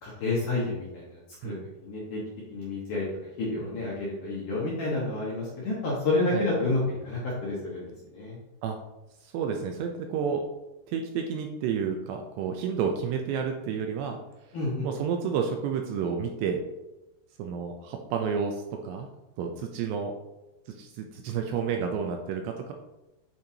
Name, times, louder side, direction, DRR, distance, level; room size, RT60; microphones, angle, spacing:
voice 1, 0.0-1.6 1.8-2.2 2.5-3.1 3.4-8.4 14.5-14.9, left 2 dB, 70° left, -6 dB, 2.0 m, -29 dB
voice 2, 9.2-10.4 10.9-14.2 14.8-16.6 17.4-19.1 19.4-20.1 20.8-22.7, right 6 dB, 80° right, 3 dB, 2.5 m, -30 dB
9.2 x 4.3 x 2.8 m, 0.97 s
omnidirectional pair, 5.3 m